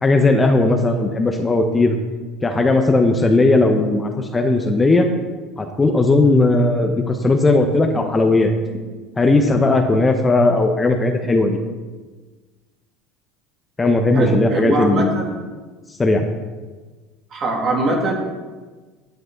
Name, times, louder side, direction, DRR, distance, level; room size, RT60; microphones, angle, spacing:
voice 1, 0.0-2.0 2.4-5.1 5.6-8.5 9.2-11.6 13.8-15.2 16.0-16.3, left 2 dB, 20° left, 4 dB, 1.0 m, -17 dB
voice 2, 14.1-15.3 17.3-18.1, right 2 dB, 40° right, -1 dB, 2.9 m, -21 dB
11.0 x 9.2 x 4.0 m, 1.3 s
hypercardioid pair, 90°, 0 cm